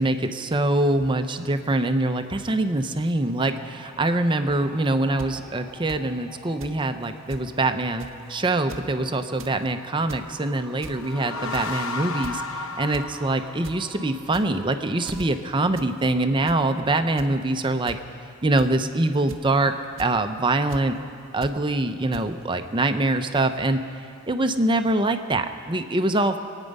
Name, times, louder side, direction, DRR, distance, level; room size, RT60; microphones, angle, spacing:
voice 1, 0.0-18.0 18.4-19.7 20.0-21.0 21.3-23.8 24.3-26.4, right 2 dB, 25° right, 8 dB, 0.6 m, -24 dB
sound 1, 3.4-15.5, right 1 dB, ahead, 1.3 m, -48 dB
sound 2, 5.2-5.3 5.9-6.0 6.6-6.8 7.0-7.1 7.3-7.5 8.0-8.2 8.6-8.9 9.2-9.5 9.9-10.3 10.8-11.1 11.5-11.8 12.2-12.5 12.9-13.1 13.4-13.8 14.2-14.7 15.0-15.2 15.7-15.9 16.2-16.6 17.2-17.3 17.9-18.0 18.6-18.8 19.3-19.6 20.0-20.1 20.7-20.8 21.4-21.5 22.1-22.2, right 2 dB, 65° right, 0.7 m, -40 dB
sound 3, 10.8-14.3, left 3 dB, 90° left, 0.8 m, -33 dB
25.0 x 9.1 x 5.4 m, 2.3 s
head